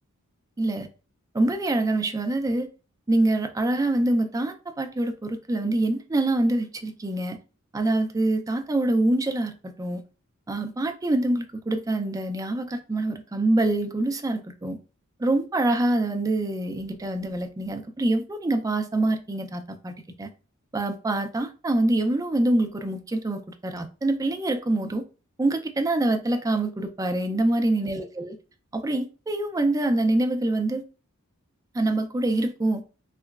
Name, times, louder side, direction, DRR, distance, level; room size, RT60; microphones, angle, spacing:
voice 1, 0.6-0.9 1.3-2.7 3.1-7.4 7.7-10.0 10.5-14.8 15.2-20.3 20.7-25.0 25.4-28.4 28.7-30.8 31.7-32.8, right 2 dB, 15° right, 0.4 m, -25 dB
3.3 x 2.9 x 2.3 m
head